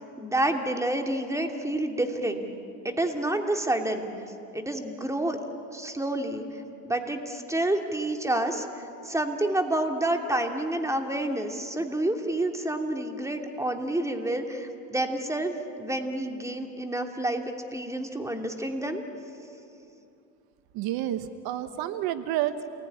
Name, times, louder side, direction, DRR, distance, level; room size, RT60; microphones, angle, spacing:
voice 1, 0.2-2.5 2.8-4.1 4.5-5.4 5.7-6.4 6.9-19.0, right 1 dB, 10° right, 4 dB, 2.9 m, -29 dB
voice 2, 20.7-22.7, right 12 dB, 70° right, 11 dB, 1.3 m, -30 dB
28.5 x 20.5 x 10.0 m, 2.7 s
supercardioid pair, 90°, 38 cm